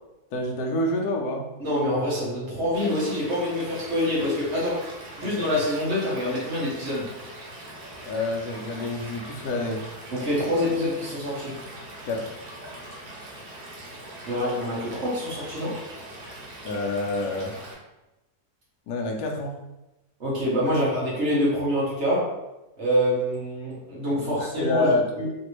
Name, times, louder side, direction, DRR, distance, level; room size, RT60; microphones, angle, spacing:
voice 1, 0.3-1.5 5.2-5.3 8.1-9.8 12.0-12.3 16.6-17.5 18.9-19.6 20.7-20.8 24.2-25.1, left 2 dB, 80° left, 0 dB, 1.1 m, -27 dB
voice 2, 1.6-7.1 10.1-11.6 14.2-15.8 20.2-22.3 22.8-25.3, left 1 dB, 50° right, -6 dB, 1.1 m, -26 dB
Stream / Liquid, 2.7-17.7, right 1 dB, 80° right, 1.3 m, -42 dB
3.2 x 2.6 x 3.0 m, 1.0 s
omnidirectional pair, 1.7 m